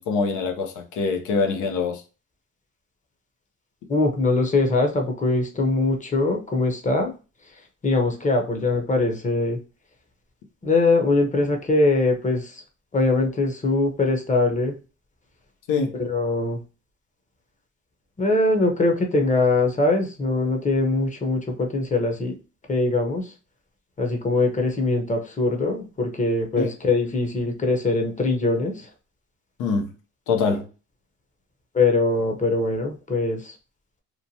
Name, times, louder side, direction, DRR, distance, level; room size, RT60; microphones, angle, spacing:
voice 1, 0.0-2.0 15.7-16.0 26.6-26.7 29.6-29.9 30.3-30.7, left 4 dB, 85° left, 0.7 m, -24 dB
voice 2, 3.9-7.1 7.8-9.6 10.6-12.6 12.9-14.7 15.9-16.6 18.2-22.3 22.7-23.3 24.0-28.9 31.7-33.5, left 2 dB, 25° left, 0.7 m, -22 dB
3.0 x 2.1 x 2.7 m
cardioid pair, 90°, 30 cm